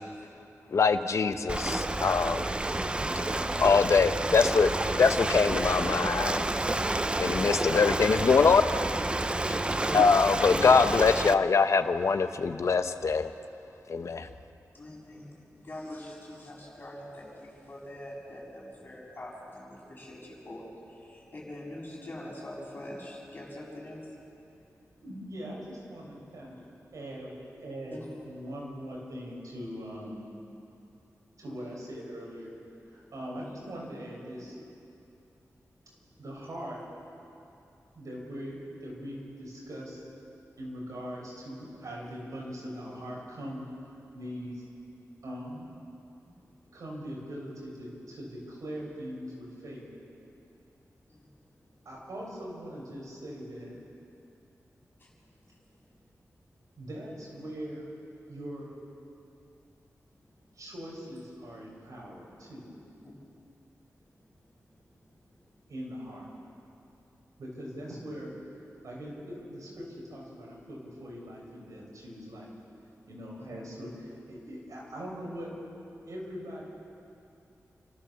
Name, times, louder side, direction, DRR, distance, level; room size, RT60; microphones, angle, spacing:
voice 1, 0.7-2.4 3.6-4.7 5.0-6.5 7.2-8.6 9.9-13.3 13.9-14.3, left 5 dB, 60° left, 9 dB, 0.9 m, -23 dB
Ocean, 1.5-11.3, right 2 dB, 20° right, 0.6 m, -29 dB
voice 2, 3.0-3.5 10.4-10.9 14.7-24.1 26.6-26.7 27.9-28.1 33.3-33.6 42.1-42.2 46.3-46.4 51.1-51.3 51.7-51.9 55.0-55.1 64.4-64.5 64.8-64.9 73.4-73.6, left 1 dB, 35° left, -5 dB, 6.9 m, -44 dB
voice 3, 25.0-26.6 26.9-30.3 31.4-32.6 32.9-34.5 36.2-36.8 37.9-40.1 40.6-43.7 44.1-44.7 45.2-45.7 46.7-49.9 51.8-53.8 56.8-57.9 58.3-58.8 60.5-62.7 65.7-66.3 67.4-68.3 68.8-72.5 73.1-75.5 76.0-76.6, equal, 75° right, -3 dB, 6.5 m, -41 dB
29.0 x 14.5 x 7.2 m, 2.7 s
wide cardioid pair, 145°, 6 cm